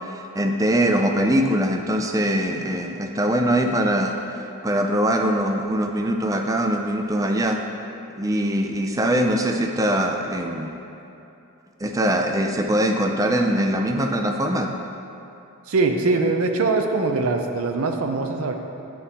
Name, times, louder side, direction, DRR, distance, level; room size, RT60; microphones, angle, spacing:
voice 1, 0.0-7.6 8.2-10.7 11.8-14.7, right 1 dB, 15° right, 3 dB, 0.4 m, -22 dB
voice 2, 15.7-18.5, right 3 dB, 70° right, 4 dB, 0.5 m, -22 dB
9.3 x 3.7 x 4.1 m, 2.8 s
head